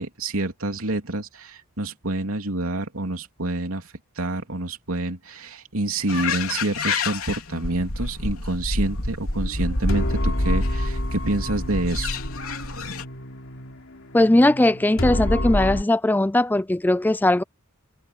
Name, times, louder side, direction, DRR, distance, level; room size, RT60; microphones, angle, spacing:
voice 1, 0.0-12.2, right 2 dB, 80° right, 3.1 m, -28 dB
sound 1, 6.1-13.0, left 2 dB, 80° left, 3.3 m, -28 dB
sound 2, 9.9-15.8, left 1 dB, 65° left, 3.7 m, -28 dB
voice 2, 14.1-17.4, left 1 dB, 10° left, 0.3 m, -19 dB
head